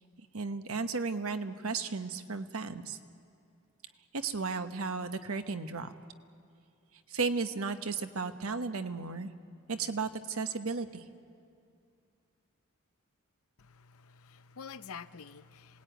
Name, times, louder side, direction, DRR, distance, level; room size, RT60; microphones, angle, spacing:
voice 1, 0.3-3.0 4.1-5.9 7.1-9.3 9.7-11.1, right 4 dB, 75° right, 9 dB, 1.1 m, -34 dB
voice 2, 13.6-15.8, left 6 dB, 75° left, 12 dB, 0.7 m, -48 dB
27.0 x 18.5 x 9.1 m, 2.4 s
head